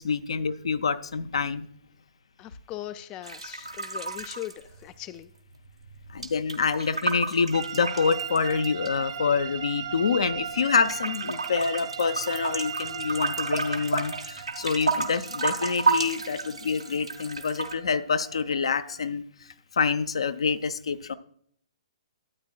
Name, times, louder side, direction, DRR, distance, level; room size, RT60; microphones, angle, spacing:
voice 1, 0.0-1.7 6.1-19.2 19.7-21.1, left 5 dB, 60° left, 12 dB, 0.6 m, -27 dB
voice 2, 2.4-5.3, left 13 dB, 20° left, 13 dB, 0.3 m, -40 dB
sound 1, 3.2-5.3 5.5-8.9 9.5-10.5 10.9-17.7, right 4 dB, 85° right, 1.3 m, -32 dB
sound 2, 7.5-19.1, right 8 dB, 50° right, 0.7 m, -38 dB
13.0 x 8.8 x 2.3 m, 0.62 s
figure-of-eight pair, 125°, 3 cm